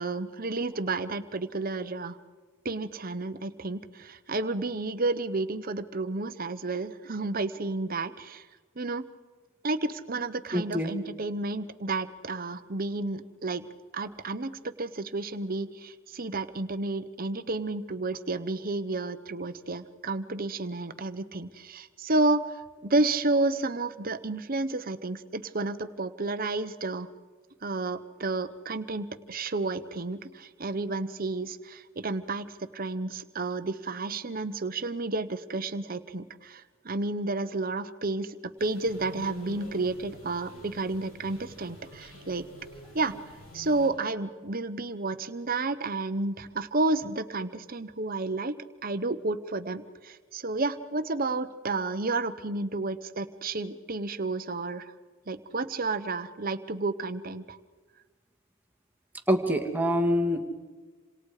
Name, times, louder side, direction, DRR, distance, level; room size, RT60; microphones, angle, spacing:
voice 1, 0.0-2.2 2.6-8.4 8.8-9.0 9.6-13.6 13.9-27.1 27.6-42.5 42.9-43.1 43.5-54.9 55.3-57.6, right 2 dB, 45° right, 11 dB, 1.0 m, -31 dB
voice 2, 10.5-10.9 59.3-60.4, equal, 10° right, 3 dB, 2.0 m, -25 dB
sound 1, 38.6-43.9, left 1 dB, 75° left, 8.0 m, -47 dB
27.5 x 27.0 x 4.9 m, 1.4 s
head